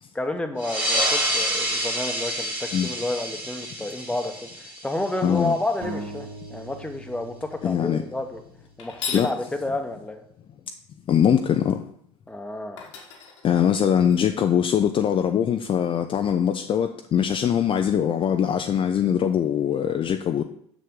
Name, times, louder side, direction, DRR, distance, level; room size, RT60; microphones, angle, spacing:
voice 1, 0.1-8.4 8.8-10.2 12.3-12.8, left 2 dB, 5° left, 6 dB, 1.0 m, -30 dB
sound 1, 0.6-5.7, equal, 10° right, 2.1 m, -28 dB
voice 2, 5.2-5.5 7.6-8.0 9.1-9.3 11.1-11.8 13.4-20.4, left 9 dB, 35° left, 6 dB, 0.4 m, -22 dB
sound 2, 5.8-9.4, right 1 dB, 60° right, 1.5 m, -41 dB
sound 3, 8.8-9.3 12.3-12.4 12.8-14.1, left 6 dB, 80° left, 1.4 m, -35 dB
6.7 x 6.3 x 3.7 m, 0.69 s
hypercardioid pair, 65°, 15 cm